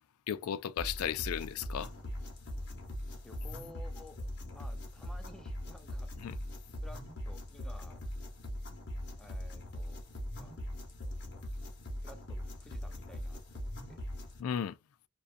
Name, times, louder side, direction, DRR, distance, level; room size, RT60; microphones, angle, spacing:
voice 1, 0.3-1.9 6.2-6.3 14.4-14.8, left 9 dB, 85° left, 0.3 m, -35 dB
sound 1, 0.8-14.4, left 1 dB, 50° left, 0.8 m, -41 dB
voice 2, 3.2-6.1 6.8-8.0 9.2-10.0 10.4-10.5 12.0-14.0, left 1 dB, 5° left, 0.4 m, -55 dB
2.5 x 2.3 x 2.4 m
head